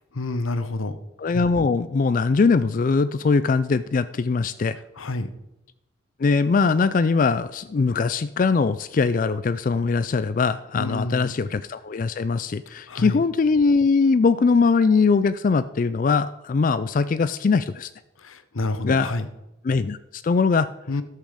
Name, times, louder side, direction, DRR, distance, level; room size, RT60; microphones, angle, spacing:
voice 1, 0.1-1.0 5.0-5.3 10.8-11.4 12.9-13.2 18.2-19.3 20.9-21.0, left 2 dB, 80° left, 12 dB, 0.9 m, -28 dB
voice 2, 1.2-4.8 6.2-17.9 18.8-19.1 19.6-20.7, left 4 dB, 40° left, 14 dB, 0.3 m, -21 dB
12.0 x 7.6 x 5.0 m, 0.94 s
head